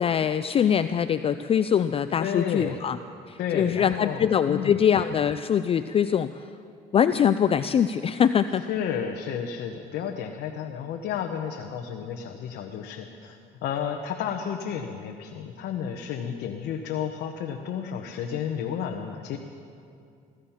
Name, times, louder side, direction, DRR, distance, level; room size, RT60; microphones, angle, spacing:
voice 1, 0.0-3.0 3.3-6.4 6.9-8.6, left 8 dB, 35° left, 11 dB, 0.4 m, -23 dB
voice 2, 2.2-2.8 3.4-4.8 8.7-19.4, left 8 dB, 75° left, 2 dB, 1.0 m, -32 dB
15.5 x 15.0 x 5.7 m, 2.4 s
cardioid pair, 110°, 17 cm